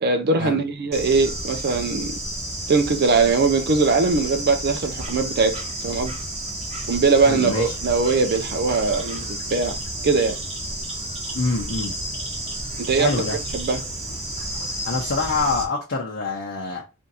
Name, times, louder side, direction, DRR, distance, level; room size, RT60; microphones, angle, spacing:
voice 1, 0.0-2.1 2.7-6.1 6.9-9.8 10.0-10.4 12.8-13.1 13.5-13.8, right 4 dB, 50° right, 0.5 m, -21 dB
Bird / Insect, 0.9-15.6, right 1 dB, 30° right, 0.9 m, -31 dB
voice 2, 7.2-7.7 11.4-11.9 13.0-13.4 14.8-16.9, left 3 dB, 55° left, 0.8 m, -25 dB
3.4 x 2.7 x 4.1 m
head